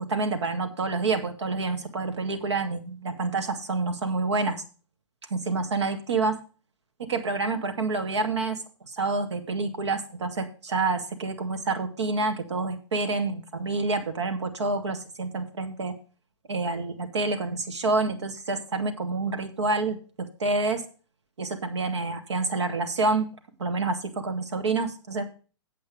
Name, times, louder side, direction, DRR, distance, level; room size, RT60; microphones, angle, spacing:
voice 1, 0.1-4.6 5.3-6.4 7.0-8.6 8.8-15.9 16.5-20.0 20.4-20.8 21.4-23.3 23.6-25.2, right 3 dB, 70° right, 7 dB, 1.8 m, -28 dB
8.3 x 7.9 x 5.2 m, 0.36 s
figure-of-eight pair, 110°, 15 cm